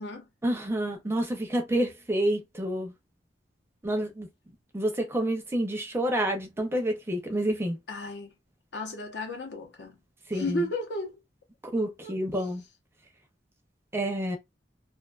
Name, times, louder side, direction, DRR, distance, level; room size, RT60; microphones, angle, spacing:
voice 1, 0.4-2.9 3.8-4.3 4.7-7.8 10.3-10.6 11.7-12.6 13.9-14.4, right 1 dB, 15° right, 0.5 m, -28 dB
voice 2, 7.9-8.3 8.7-10.0 10.3-11.1 11.8-12.5, left 1 dB, 70° left, 0.7 m, -34 dB
2.5 x 2.3 x 2.3 m
head